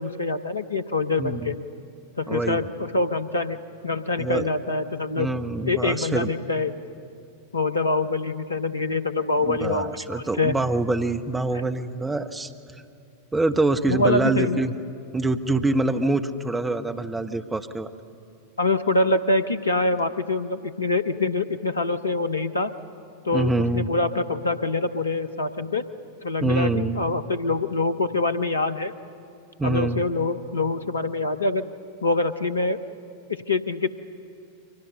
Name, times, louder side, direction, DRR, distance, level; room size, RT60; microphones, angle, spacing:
voice 1, 0.0-1.6 2.2-3.6 3.8-5.3 5.6-6.7 7.5-10.6 11.5-11.6 13.9-14.6 18.6-22.7 23.2-25.8 26.2-28.9 29.6-31.7 32.0-32.8 33.3-33.9, left 3 dB, 75° left, 11 dB, 0.8 m, -25 dB
voice 2, 1.2-1.5 2.3-2.6 4.2-4.4 5.2-6.3 9.5-12.5 13.3-14.7 15.1-17.9 23.3-23.9 26.4-27.0 29.6-30.0, right 2 dB, 10° right, 7 dB, 1.1 m, -25 dB
29.0 x 24.0 x 6.5 m, 2.6 s
figure-of-eight pair, 90°, 0 cm